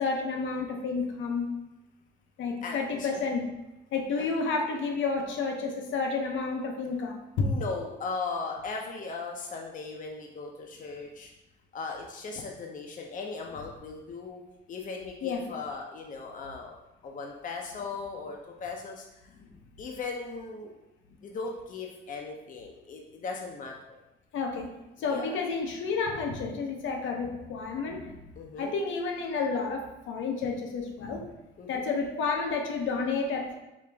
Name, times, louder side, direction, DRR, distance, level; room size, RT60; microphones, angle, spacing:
voice 1, 0.0-1.5 2.4-3.5 3.9-7.6 15.2-15.4 19.4-19.5 24.3-24.7 25.0-28.1 28.6-31.3 31.7-33.6, left 4 dB, 75° left, 2 dB, 0.8 m, -30 dB
voice 2, 2.6-3.3 4.2-4.3 7.4-11.3 11.7-14.4 14.7-16.8 17.0-19.3 19.8-20.7 21.2-24.0 25.0-25.4 28.4-28.7 31.6-31.9, left 4 dB, 40° left, 1 dB, 0.6 m, -38 dB
5.1 x 2.5 x 3.3 m, 0.97 s
cardioid pair, 90°, 20 cm